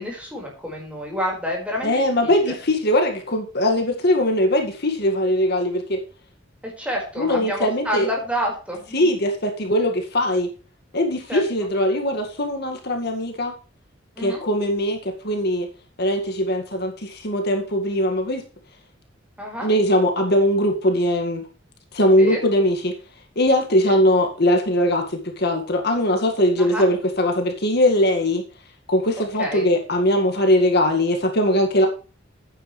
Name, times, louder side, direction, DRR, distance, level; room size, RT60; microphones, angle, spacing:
voice 1, 0.0-2.5 6.6-9.1 11.3-11.4 14.2-14.4 19.4-19.7 22.2-22.4 23.8-24.0 26.6-26.9 29.1-29.7, equal, 5° right, -1 dB, 4.9 m, -29 dB
voice 2, 1.8-6.0 7.2-8.1 8.9-10.5 10.9-13.5 14.2-15.7 16.0-18.4 19.6-21.5 21.9-23.0 23.4-28.4 28.9-31.9, left 1 dB, 55° left, 4 dB, 2.0 m, -20 dB
12.0 x 9.4 x 3.3 m, 0.36 s
head